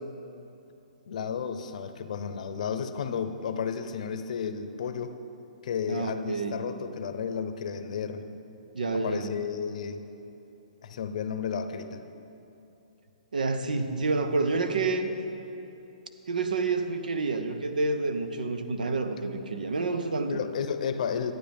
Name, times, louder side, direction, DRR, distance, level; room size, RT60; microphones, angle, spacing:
voice 1, 1.1-5.2 5.6-8.2 8.9-10.0 10.8-12.0 20.3-21.3, left 6 dB, 60° left, 10 dB, 0.7 m, -32 dB
voice 2, 5.9-6.6 8.7-9.3 13.3-15.1 16.3-20.4, right 3 dB, 85° right, 8 dB, 0.8 m, -28 dB
12.5 x 9.1 x 3.5 m, 2.9 s
hypercardioid pair, 135°, 4 cm